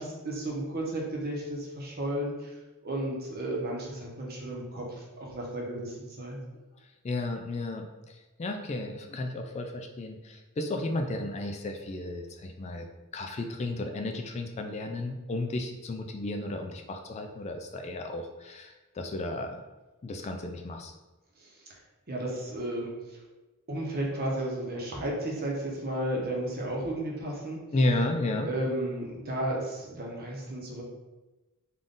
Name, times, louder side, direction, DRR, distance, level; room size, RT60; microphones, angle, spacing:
voice 1, 0.0-2.6 2.8-6.4 21.4-21.7 22.1-23.2 23.7-27.6 28.4-30.8, right 1 dB, 45° right, -2 dB, 0.9 m, -33 dB
voice 2, 7.0-8.1 8.4-12.9 13.1-19.6 20.0-20.9 27.7-28.5, left 2 dB, 30° left, 4 dB, 0.3 m, -33 dB
3.8 x 2.5 x 3.7 m, 1.1 s
head